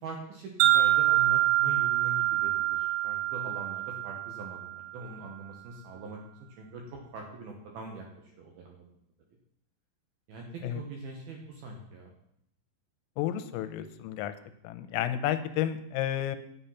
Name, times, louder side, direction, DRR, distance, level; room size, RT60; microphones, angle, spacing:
voice 1, 0.0-6.2 6.6-8.9 10.3-12.1, right 2 dB, 70° right, 1 dB, 2.4 m, -42 dB
Wind chime, 0.6-4.9, right 14 dB, 90° right, 3.7 m, -26 dB
voice 2, 13.2-14.3 14.6-16.4, left 11 dB, 85° left, 9 dB, 3.4 m, -31 dB
10.0 x 9.1 x 5.6 m, 0.75 s
omnidirectional pair, 5.9 m